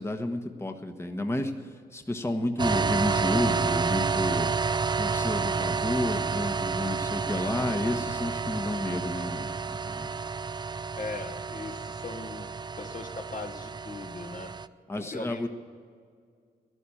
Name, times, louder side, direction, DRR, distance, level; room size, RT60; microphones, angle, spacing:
voice 1, 0.0-4.5 5.0-10.1 14.9-15.5, left 1 dB, 15° left, 5 dB, 1.2 m, -31 dB
sound 1, 2.6-14.7, right 5 dB, 25° right, 0.5 m, -30 dB
voice 2, 10.9-14.6 14.9-15.5, left 3 dB, 50° left, 4 dB, 1.6 m, -39 dB
14.0 x 11.5 x 8.6 m, 2.1 s
cardioid pair, 65°, 18 cm